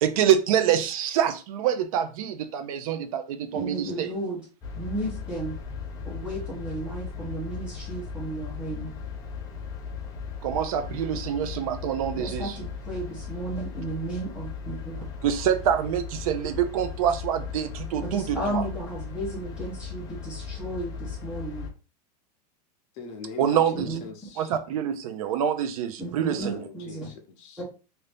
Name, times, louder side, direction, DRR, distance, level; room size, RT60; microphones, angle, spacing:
voice 1, 0.0-4.2 10.4-12.7 15.2-18.7 23.4-24.0 24.4-26.7, right 9 dB, 55° right, 0.6 m, -26 dB
voice 2, 3.5-4.4 4.8-5.6 6.1-8.9 12.1-15.0 18.0-21.7 23.9-24.0 26.0-27.1 27.6-27.7, right 2 dB, 5° right, 0.9 m, -34 dB
sound 1, 4.6-21.7, left 6 dB, 15° left, 0.4 m, -37 dB
voice 3, 23.0-24.5 26.3-27.6, left 4 dB, 30° left, 0.8 m, -41 dB
2.8 x 2.7 x 3.3 m
supercardioid pair, 165°, 21 cm